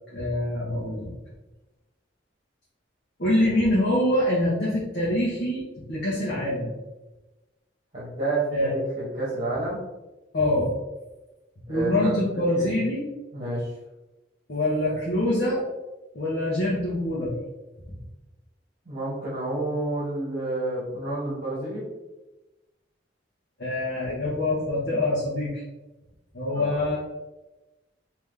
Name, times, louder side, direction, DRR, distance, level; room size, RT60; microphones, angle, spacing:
voice 1, 0.1-1.1 3.2-5.6 5.9-6.7 8.5-8.7 10.3-10.7 11.7-13.0 14.5-15.6 16.1-17.3 23.6-25.6 26.3-27.0, left 1 dB, 60° left, -7 dB, 1.0 m, -25 dB
voice 2, 7.9-9.8 11.7-12.7 13.3-13.7 18.8-21.8 26.5-26.9, right 2 dB, 40° right, -7 dB, 1.2 m, -30 dB
3.6 x 2.9 x 3.4 m, 1.1 s
head